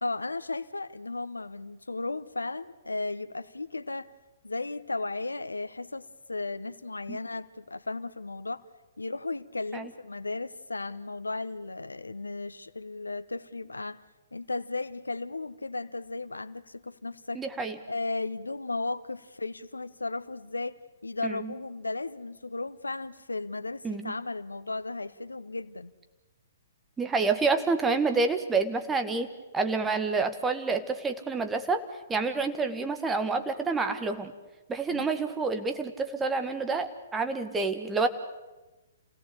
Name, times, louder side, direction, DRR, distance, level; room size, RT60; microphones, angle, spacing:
voice 1, 0.0-4.1 4.4-8.6 9.0-14.0 14.3-17.4 17.9-25.9 34.9-35.1, left 3 dB, 85° left, 17 dB, 0.9 m, -35 dB
voice 2, 17.4-17.8 21.2-21.5 23.8-24.1 27.0-29.3 29.5-31.8 32.1-34.3 34.7-38.1, right 4 dB, 10° right, 7 dB, 1.7 m, -28 dB
28.0 x 17.5 x 8.6 m, 1.1 s
figure-of-eight pair, 120°, 0 cm